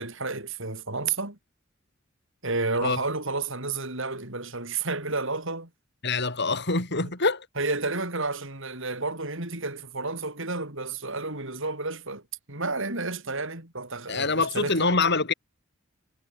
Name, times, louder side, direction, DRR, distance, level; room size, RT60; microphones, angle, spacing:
voice 1, 0.0-1.4 2.4-5.7 7.6-12.2 12.5-14.9, right 3 dB, 65° right, 7.1 m, -31 dB
voice 2, 6.0-7.5 14.1-15.3, left 3 dB, 55° left, 6.1 m, -25 dB
head